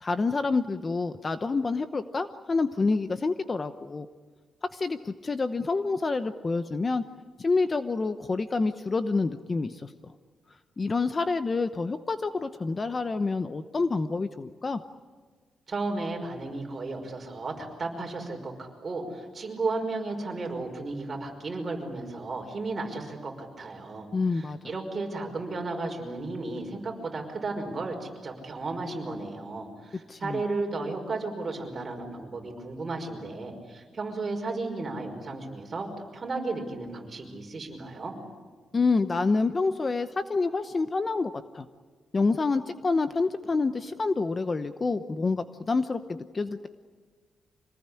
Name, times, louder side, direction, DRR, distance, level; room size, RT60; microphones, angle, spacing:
voice 1, 0.0-4.1 4.6-7.0 7.4-9.9 10.8-14.8 24.1-24.6 30.1-30.4 38.7-41.7 42.1-46.7, left 3 dB, 25° left, 10 dB, 0.9 m, -27 dB
voice 2, 15.7-38.2, right 3 dB, 30° right, 2 dB, 5.4 m, -34 dB
26.0 x 19.5 x 9.9 m, 1.5 s
cardioid pair, 135°, 0 cm